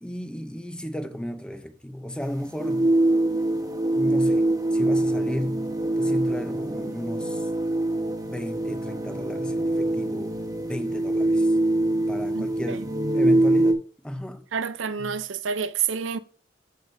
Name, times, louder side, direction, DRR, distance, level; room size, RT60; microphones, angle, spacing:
voice 1, 0.0-2.9 3.9-5.7 6.0-7.5 8.3-11.5 12.1-14.4 15.0-15.1, left 1 dB, 5° left, 0.6 m, -34 dB
sound 1, 2.2-13.7, right 1 dB, 20° right, 1.2 m, -24 dB
voice 2, 12.3-12.8 14.5-16.2, right 6 dB, 90° right, 0.6 m, -29 dB
9.3 x 7.3 x 2.7 m
head